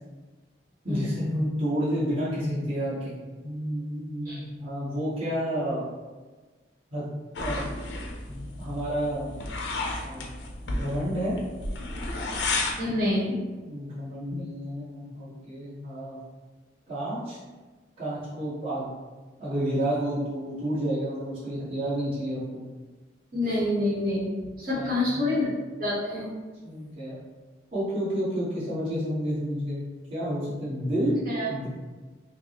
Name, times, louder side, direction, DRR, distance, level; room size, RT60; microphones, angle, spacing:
voice 1, 0.8-3.1 3.4-5.8 6.9-7.1 7.4-7.6 8.3-9.3 10.0-10.3 10.6-11.4 13.6-16.2 16.9-17.4 18.0-18.8 19.4-22.6 24.7-25.4 26.6-27.2 27.7-29.8 30.1-31.1 31.5-31.7, equal, 30° right, -10 dB, 1.3 m, -30 dB
sound 1, 7.4-12.8, left 2 dB, 80° left, 0.5 m, -32 dB
voice 2, 12.8-13.3 23.3-24.3 24.6-25.5 25.8-26.3 31.3-31.5, left 1 dB, 50° right, -9 dB, 1.3 m, -27 dB
5.6 x 2.0 x 2.9 m, 1.3 s
head